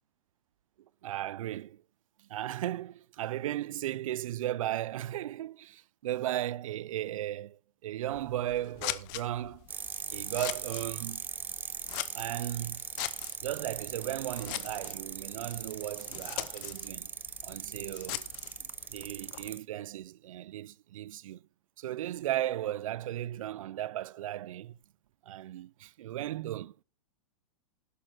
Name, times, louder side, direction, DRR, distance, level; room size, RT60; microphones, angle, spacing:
voice 1, 1.0-1.8 2.2-9.7 10.1-11.2 12.1-12.8 13.4-17.1 17.4-18.3 18.6-21.4 21.8-24.8 25.3-26.8, right 13 dB, 75° right, 0.4 m, -36 dB
Scissors, 8.0-19.5, left 17 dB, 35° left, 0.7 m, -42 dB
sound 1, 9.7-19.6, right 6 dB, 10° right, 0.5 m, -40 dB
11.0 x 6.1 x 6.3 m
hypercardioid pair, 150°, 17 cm